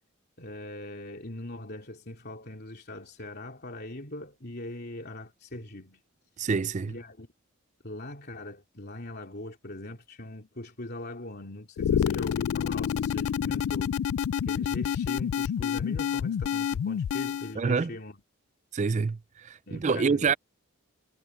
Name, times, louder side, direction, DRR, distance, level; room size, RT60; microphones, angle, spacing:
voice 1, 0.4-6.0 6.9-7.3 7.8-14.0 14.4-18.2 19.7-20.4, left 1 dB, 50° left, 3.1 m, -41 dB
voice 2, 6.4-7.0 17.6-17.9 18.7-20.3, right 5 dB, 35° right, 0.4 m, -27 dB
sound 1, 11.8-17.5, left 8 dB, 75° left, 0.3 m, -28 dB
head